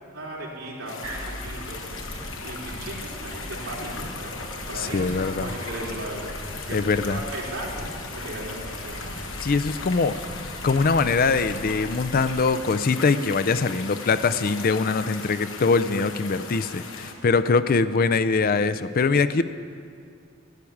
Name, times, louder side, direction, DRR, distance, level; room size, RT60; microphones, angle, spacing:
voice 1, 0.0-1.8 2.4-6.8 7.1-7.8 8.1-9.1, right 1 dB, 80° right, -4 dB, 3.6 m, -36 dB
sound 1, 0.9-17.1, left 4 dB, 65° left, 1.4 m, -38 dB
sound 2, 1.0-12.4, equal, 65° right, 3.1 m, -39 dB
voice 2, 4.8-5.5 6.7-7.2 9.4-10.2 10.6-19.4, left 4 dB, 45° left, 13 dB, 0.5 m, -22 dB
13.0 x 8.6 x 9.3 m, 2.3 s
head